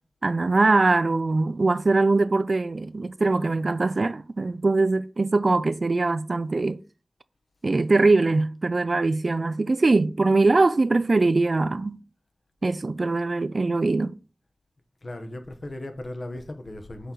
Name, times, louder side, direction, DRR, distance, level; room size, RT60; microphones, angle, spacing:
voice 1, 0.2-6.8 7.6-12.0 12.6-14.1, right 3 dB, 60° right, 0.4 m, -22 dB
voice 2, 15.0-17.1, left 1 dB, 60° left, 1.1 m, -37 dB
6.5 x 4.5 x 4.0 m
wide cardioid pair, 65°, 0 cm